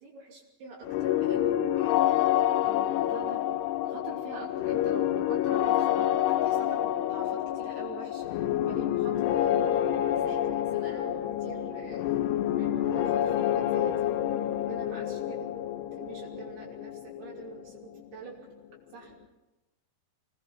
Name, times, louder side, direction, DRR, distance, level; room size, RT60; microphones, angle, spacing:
voice 1, 0.0-2.3 2.6-3.4 3.8-8.3 8.7-9.7 10.2-12.1 12.5-14.1 14.5-15.5 16.0-18.5 18.9-19.2, right 4 dB, 70° right, -3 dB, 4.9 m, -45 dB
sound 1, 0.8-18.5, left 12 dB, 85° left, 3.0 m, -28 dB
25.0 x 18.5 x 5.7 m, 1.0 s
omnidirectional pair, 4.7 m